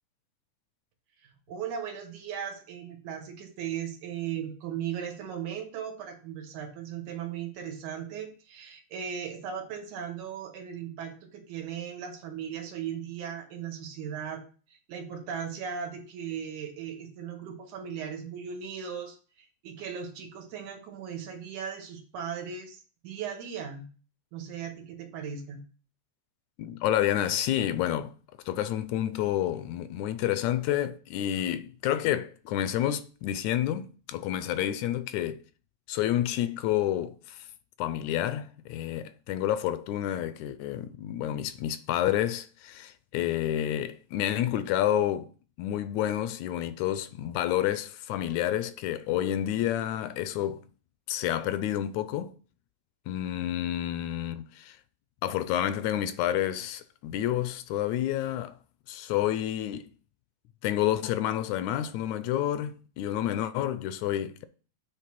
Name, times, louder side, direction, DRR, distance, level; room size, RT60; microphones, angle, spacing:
voice 1, 1.2-14.4 14.7-23.9 24.3-25.6, right 8 dB, 85° right, 2.7 m, -37 dB
voice 2, 26.6-28.1 28.5-35.4 35.9-37.4 37.8-45.3 45.6-50.6 51.1-52.3 53.1-54.8 55.2-58.5 58.9-59.9 60.6-64.5, left 12 dB, 80° left, 1.8 m, -29 dB
7.8 x 3.2 x 5.9 m
omnidirectional pair, 3.4 m